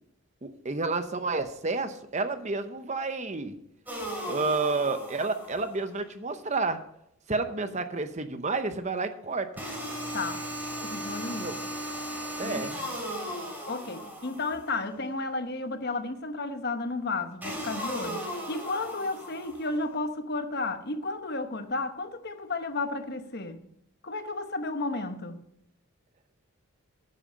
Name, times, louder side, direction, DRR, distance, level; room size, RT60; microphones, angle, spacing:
voice 1, 0.4-3.6 4.3-6.8 7.3-9.5 11.4-11.6 12.4-12.7, right 3 dB, 30° right, 0.8 m, -30 dB
sound 1, 3.9-5.8 9.6-14.8 17.4-19.8, equal, 10° right, 3.1 m, -37 dB
voice 2, 10.8-11.5 12.4-12.9 13.7-23.6 24.0-25.4, left 3 dB, 45° left, 1.0 m, -33 dB
9.8 x 9.1 x 5.4 m
head